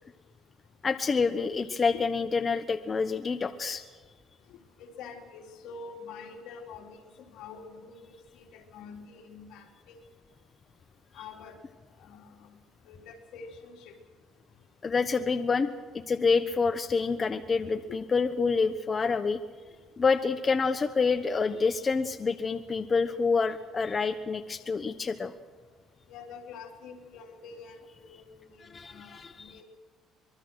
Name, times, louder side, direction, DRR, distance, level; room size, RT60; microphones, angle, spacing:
voice 1, 0.8-3.8 14.8-15.7 15.9-19.4 20.0-25.3 28.6-29.3, left 4 dB, 30° left, 9 dB, 1.0 m, -27 dB
voice 2, 4.8-7.0 7.3-10.1 11.1-11.6 12.0-12.6 12.9-14.0 17.9-18.0 21.5-21.6 26.1-29.6, left 5 dB, 75° left, 1 dB, 3.8 m, -46 dB
25.0 x 22.5 x 6.3 m, 1.4 s
cardioid pair, 120°, 0 cm